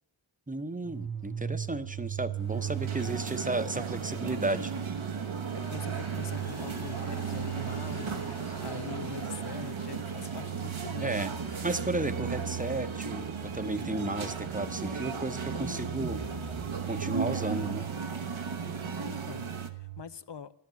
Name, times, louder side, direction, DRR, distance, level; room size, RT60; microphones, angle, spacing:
voice 1, 0.5-4.7 11.0-11.3 11.6-16.2 16.9-17.9, right 2 dB, 15° right, 1.0 m, -33 dB
sound 1, 0.8-20.0, right 11 dB, 45° right, 0.7 m, -39 dB
sound 2, 2.3-19.7, right 5 dB, 85° right, 1.2 m, -37 dB
voice 2, 5.5-11.2 19.0-20.5, left 7 dB, 60° left, 0.8 m, -44 dB
Aircraft, 5.6-12.3, left 3 dB, 35° left, 1.0 m, -48 dB
13.5 x 12.0 x 7.0 m
wide cardioid pair, 55°, 46 cm